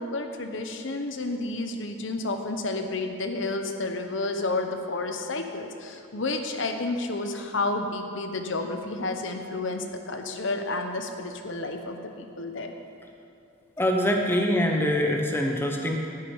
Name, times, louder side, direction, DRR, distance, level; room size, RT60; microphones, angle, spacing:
voice 1, 0.0-12.7, left 2 dB, 65° left, 5 dB, 0.8 m, -31 dB
voice 2, 13.8-16.0, equal, 10° left, 1 dB, 0.9 m, -24 dB
11.0 x 6.1 x 9.0 m, 2.5 s
head